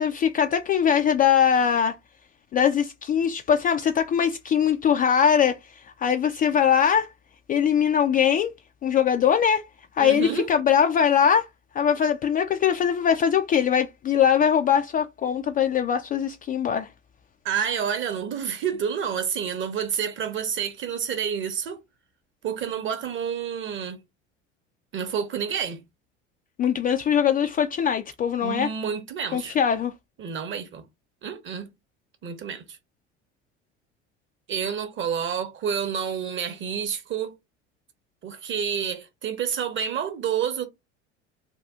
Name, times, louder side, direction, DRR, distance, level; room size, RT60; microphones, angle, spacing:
voice 1, 0.0-1.9 2.5-7.1 7.5-8.5 8.8-9.7 10.0-11.5 11.7-16.9 26.6-28.7 29.3-29.9, left 8 dB, 25° left, 0.3 m, -21 dB
voice 2, 10.0-10.5 17.4-21.8 22.4-24.0 24.9-25.8 28.4-29.5 30.2-30.8 31.2-31.7 32.2-32.8 34.5-37.3 38.2-40.7, right 7 dB, 35° right, 0.9 m, -29 dB
2.8 x 2.3 x 3.5 m
hypercardioid pair, 70°, 35 cm